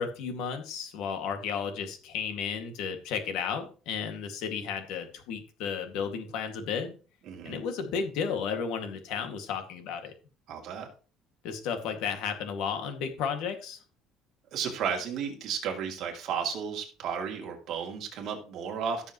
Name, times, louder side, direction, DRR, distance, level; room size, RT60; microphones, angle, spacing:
voice 1, 0.0-7.0 7.4-10.1 11.4-13.8, left 6 dB, 70° left, 6 dB, 2.1 m, -33 dB
voice 2, 7.3-7.6 10.5-10.9 14.5-19.1, right 7 dB, 50° right, 1 dB, 2.7 m, -33 dB
16.0 x 7.0 x 3.1 m, 0.36 s
cardioid pair, 160°, 0 cm